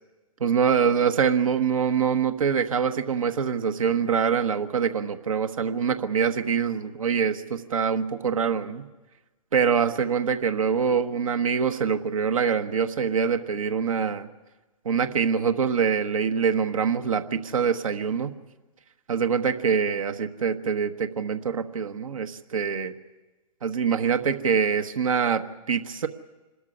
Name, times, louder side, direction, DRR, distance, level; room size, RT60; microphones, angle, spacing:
voice 1, 0.4-8.9 9.5-14.3 14.8-18.3 19.1-22.9 23.6-26.1, right 6 dB, 65° right, 7 dB, 1.2 m, -24 dB
25.0 x 13.0 x 9.8 m, 1.2 s
figure-of-eight pair, 115°, 19 cm